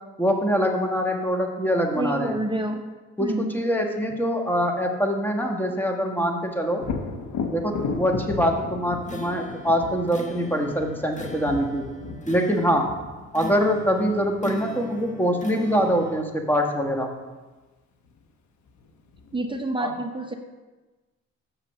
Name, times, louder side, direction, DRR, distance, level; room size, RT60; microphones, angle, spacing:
voice 1, 0.2-2.4 3.2-6.8 7.5-11.9 12.3-12.9 13.3-17.1 19.8-19.9, equal, 5° left, 2 dB, 1.4 m, -24 dB
voice 2, 1.9-2.8 3.2-3.5 19.3-20.3, right 1 dB, 15° right, 4 dB, 0.7 m, -28 dB
Thunder, 6.8-14.5 18.1-18.2 18.7-19.6, left 4 dB, 70° left, 1.1 m, -34 dB
sound 1, 9.0-16.2, left 1 dB, 25° left, 1.2 m, -40 dB
6.7 x 5.8 x 6.7 m, 1.2 s
cardioid pair, 90°, 30 cm